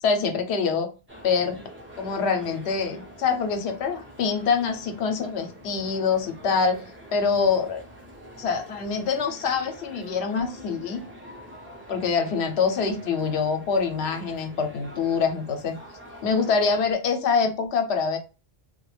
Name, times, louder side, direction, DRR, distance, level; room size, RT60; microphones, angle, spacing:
voice 1, 0.0-0.9 1.2-1.6 2.0-6.8 7.1-7.8 8.4-11.0 11.9-15.8 16.2-18.2, left 5 dB, 75° left, 5 dB, 0.9 m, -25 dB
sound 1, 1.1-16.9, equal, 15° right, 0.6 m, -45 dB
2.3 x 2.1 x 3.1 m, 0.31 s
omnidirectional pair, 1.1 m